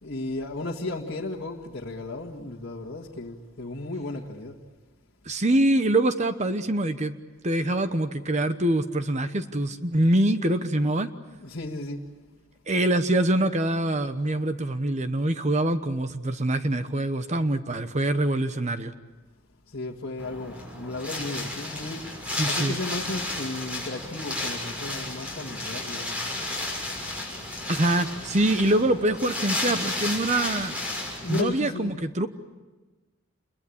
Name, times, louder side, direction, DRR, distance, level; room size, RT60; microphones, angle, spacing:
voice 1, 0.0-4.6 11.4-12.0 19.7-22.1 22.4-26.2 31.2-32.0, left 2 dB, 55° left, 1.9 m, -34 dB
voice 2, 5.3-7.2 7.4-11.1 12.7-18.9 22.4-22.8 27.7-30.7 31.3-32.3, right 1 dB, 35° right, 1.0 m, -24 dB
Wind, 20.2-31.4, left 2 dB, 5° right, 6.1 m, -33 dB
28.0 x 22.0 x 8.6 m
head